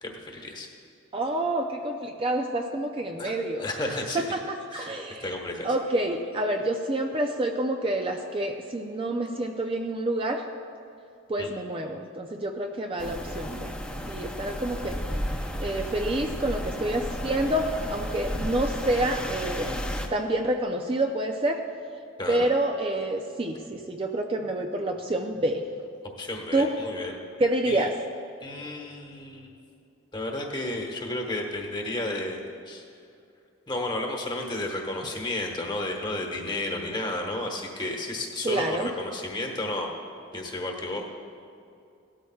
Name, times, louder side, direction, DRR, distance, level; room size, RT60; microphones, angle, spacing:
voice 1, 0.0-0.7 3.2-3.3 3.6-4.2 4.7-4.9 5.2-5.7 11.4-11.5 22.2-22.5 26.2-27.2 27.7-27.8 28.4-29.5 30.1-32.9 33.7-39.9 40.3-41.1, left 1 dB, 20° left, 1 dB, 1.3 m, -32 dB
voice 2, 1.1-3.7 4.3-5.3 5.6-10.4 11.3-13.7 14.1-15.0 15.6-19.8 20.1-21.6 22.3-25.6 26.5-26.7 27.4-27.9 38.4-38.9, right 1 dB, 25° right, 3 dB, 0.5 m, -28 dB
sound 1, 13.0-20.1, equal, 5° left, 0.7 m, -33 dB
17.5 x 12.5 x 2.4 m, 2.5 s
head